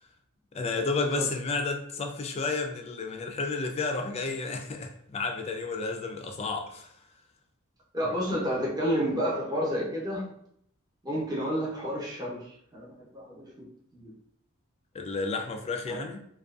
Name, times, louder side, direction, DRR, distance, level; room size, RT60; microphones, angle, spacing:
voice 1, 0.5-6.9 14.9-16.2, left 3 dB, 30° left, 4 dB, 0.3 m, -31 dB
voice 2, 7.9-10.2 11.0-13.7 13.9-14.1 15.9-16.0, equal, 20° right, -5 dB, 0.7 m, -30 dB
2.5 x 2.2 x 2.3 m, 0.69 s
head